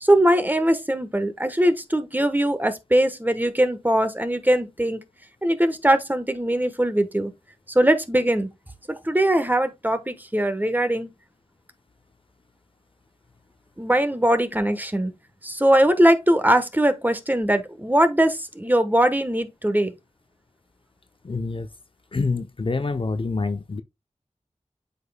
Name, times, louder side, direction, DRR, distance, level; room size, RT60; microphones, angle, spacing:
voice 1, 0.0-5.0 5.4-7.3 7.7-8.5 8.9-11.1 13.8-15.1 15.4-19.9, right 1 dB, 15° right, 1.1 m, -21 dB
voice 2, 21.2-21.7 22.1-23.8, left 3 dB, 45° left, 0.6 m, -26 dB
8.2 x 5.2 x 2.2 m
wide cardioid pair, 50°, 12 cm